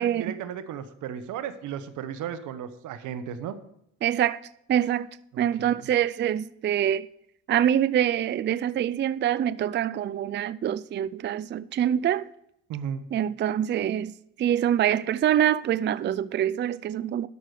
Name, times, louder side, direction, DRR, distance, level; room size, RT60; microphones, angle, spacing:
voice 1, 0.0-3.6 5.3-5.9 12.7-13.0, right 8 dB, 85° right, 0.9 m, -35 dB
voice 2, 4.0-4.4 4.7-5.1 5.4-7.1 7.5-12.2 13.1-14.1 14.4-17.3, right 10 dB, 40° right, 0.4 m, -25 dB
12.5 x 6.4 x 4.9 m
cardioid pair, 90°, 30 cm